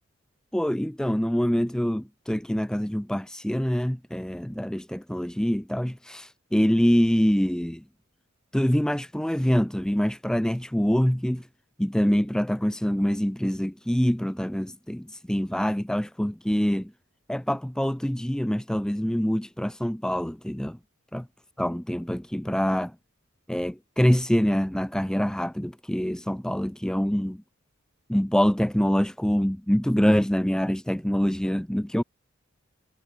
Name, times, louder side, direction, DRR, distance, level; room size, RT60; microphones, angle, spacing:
voice 1, 0.5-7.8 8.5-11.5 11.8-16.9 17.3-20.8 21.1-21.3 21.6-22.9 23.5-27.4 28.1-32.0, equal, 5° left, 0.4 m, -25 dB
head